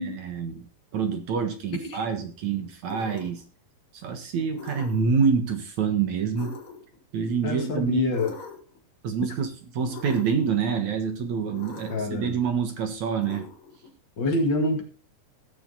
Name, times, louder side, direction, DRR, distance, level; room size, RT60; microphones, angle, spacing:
voice 1, 0.0-3.4 3.9-6.5 7.1-8.1 9.0-13.5, right 6 dB, 60° right, 6 dB, 2.4 m, -27 dB
sound 1, 2.8-3.4 4.5-5.2 6.4-7.0 8.1-8.8 9.9-10.5 11.5-12.1 13.2-13.9, left 4 dB, 80° left, 4.4 m, -42 dB
voice 2, 7.4-8.3 11.9-12.4 14.2-14.8, left 2 dB, 35° left, 3 dB, 2.1 m, -26 dB
17.0 x 7.0 x 4.1 m, 0.37 s
omnidirectional pair, 4.2 m